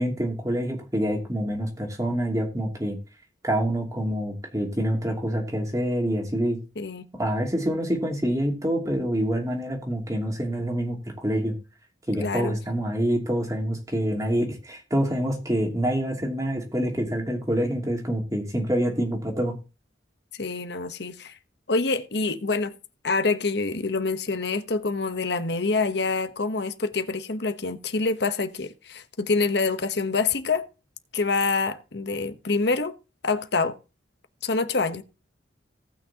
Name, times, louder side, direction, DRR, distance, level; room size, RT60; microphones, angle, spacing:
voice 1, 0.0-3.0 3.4-6.6 7.2-11.5 12.1-19.5, equal, 20° right, 2.7 m, -26 dB
voice 2, 12.2-12.6 20.4-21.3 21.7-22.7 23.0-30.7 31.1-32.9 33.2-33.8 34.4-35.0, left 3 dB, 60° left, 1.0 m, -26 dB
18.5 x 6.3 x 2.9 m
head